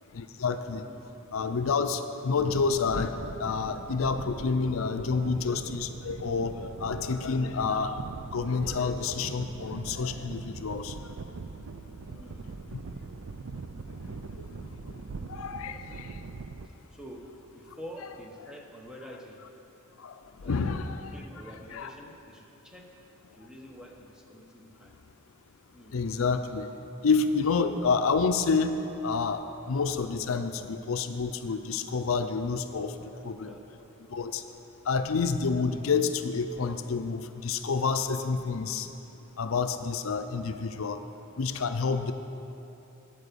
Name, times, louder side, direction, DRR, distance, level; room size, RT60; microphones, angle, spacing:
voice 1, 0.1-0.8 1.3-3.1 3.4-8.0 8.3-10.9 15.3-16.1 20.0-20.1 20.4-21.1 21.7-21.9 25.9-26.7 27.0-28.7 29.0-32.9 33.2-33.5 34.1-34.4 34.9-38.9 39.4-41.0 41.4-42.1, left 5 dB, 75° left, 9 dB, 0.5 m, -28 dB
voice 2, 0.9-1.2 12.0-12.6 15.1-16.4 16.6-17.3 17.5-19.4 20.4-20.8 21.1-22.9 23.3-24.9 25.7-26.0 33.1-34.0 34.3-34.4 34.7-34.8, equal, 5° right, 0 dB, 1.0 m, -48 dB
sound 1, 2.4-16.7, right 4 dB, 75° right, 0.5 m, -42 dB
8.9 x 8.9 x 6.8 m, 3.0 s
head